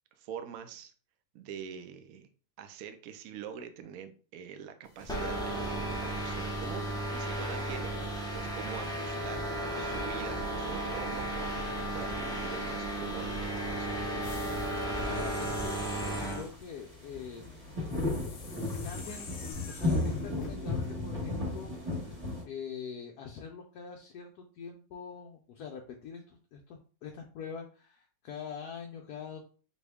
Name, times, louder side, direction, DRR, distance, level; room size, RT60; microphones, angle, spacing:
voice 1, 0.2-0.9 1.3-2.3 2.6-14.0, right 8 dB, 70° right, 8 dB, 0.9 m, -45 dB
sound 1, 5.0-22.4, left 2 dB, 20° right, 1.5 m, -38 dB
sound 2, 5.1-16.5, right 1 dB, 5° left, 0.6 m, -34 dB
sound 3, 14.2-16.6 17.9-20.6, left 4 dB, 55° left, 0.6 m, -47 dB
voice 2, 15.1-17.6 18.8-29.4, left 6 dB, 70° left, 2 dB, 1.0 m, -44 dB
4.1 x 3.1 x 3.4 m, 0.40 s
omnidirectional pair, 1.9 m